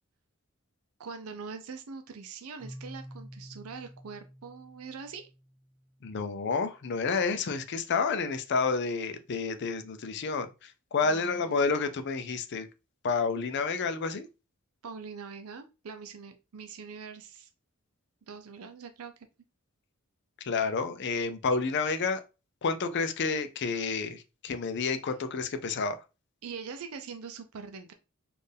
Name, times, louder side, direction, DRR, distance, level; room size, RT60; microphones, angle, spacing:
voice 1, 1.0-5.3 11.0-11.6 14.8-17.5 18.3-19.1 26.4-27.9, right 5 dB, 80° right, 0.5 m, -43 dB
Keyboard (musical), 2.6-6.3, equal, 10° right, 0.6 m, -49 dB
voice 2, 6.0-12.7 13.0-14.3 20.4-22.2 22.6-26.0, left 4 dB, 55° left, 0.5 m, -30 dB
4.3 x 2.5 x 3.3 m
head